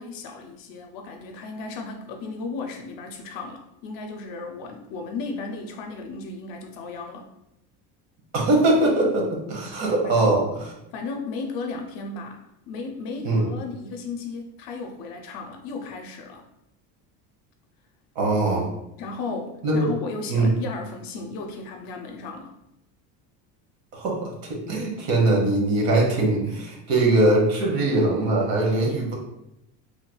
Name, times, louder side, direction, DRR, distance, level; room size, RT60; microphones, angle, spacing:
voice 1, 0.0-7.3 10.0-10.4 10.9-16.5 19.0-22.6, left 3 dB, 60° left, 4 dB, 0.5 m, -35 dB
voice 2, 8.3-10.7 13.2-13.5 18.1-18.7 19.6-19.9 20.3-20.5 23.9-29.1, right 2 dB, 60° right, -1 dB, 1.3 m, -22 dB
3.2 x 3.1 x 2.2 m, 0.86 s
cardioid pair, 130°, 40 cm